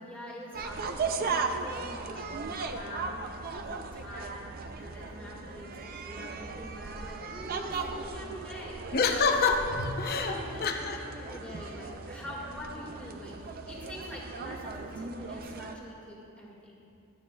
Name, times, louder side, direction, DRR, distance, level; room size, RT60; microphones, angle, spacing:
voice 1, 0.0-3.2 3.5-8.9 10.1-16.7, left 1 dB, 5° left, -6 dB, 1.9 m, -44 dB
sound 1, 0.5-15.7, right 4 dB, 45° right, 0.4 m, -37 dB
voice 2, 8.9-11.0, left 4 dB, 45° left, 3 dB, 0.7 m, -27 dB
13.5 x 8.7 x 2.3 m, 2.7 s
head